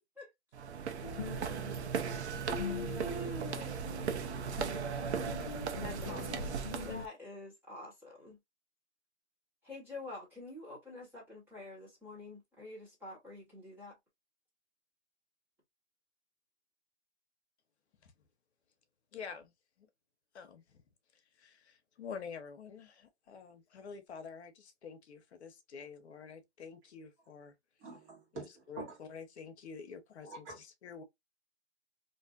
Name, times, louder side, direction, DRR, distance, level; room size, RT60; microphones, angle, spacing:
sound 1, 0.5-7.1, right 6 dB, 70° right, 0.6 m, -37 dB
sound 2, 1.0-7.0, left 7 dB, 35° left, 0.4 m, -44 dB
voice 1, 2.5-3.9 4.2-4.5 5.7-6.5 6.8-8.4 9.6-14.0, left 1 dB, 5° right, 0.7 m, -47 dB
voice 2, 19.1-19.5 19.8-19.9 20.3-20.8 21.4-27.5 28.3-31.0, left 6 dB, 65° left, 0.8 m, -48 dB
voice 3, 27.8-28.9 30.2-30.6, right 3 dB, 30° right, 1.3 m, -46 dB
2.6 x 2.5 x 2.3 m
hypercardioid pair, 145°, 36 cm